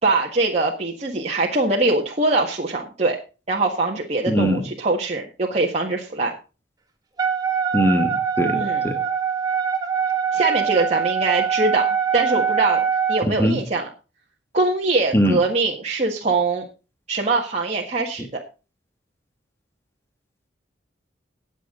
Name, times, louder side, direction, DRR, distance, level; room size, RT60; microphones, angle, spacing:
voice 1, 0.0-3.2 3.5-6.3 8.5-8.9 10.3-13.9 14.5-16.6 17.1-18.4, right 3 dB, 35° right, -2 dB, 1.6 m, -22 dB
voice 2, 4.3-4.6 7.7-9.0 13.3-13.6 15.1-15.4 18.2-18.3, equal, 15° left, 6 dB, 1.5 m, -21 dB
Wind instrument woodwind instrument, 7.2-13.2, right 7 dB, 20° right, 1.8 m, -23 dB
19.0 x 7.3 x 3.8 m, 0.32 s
head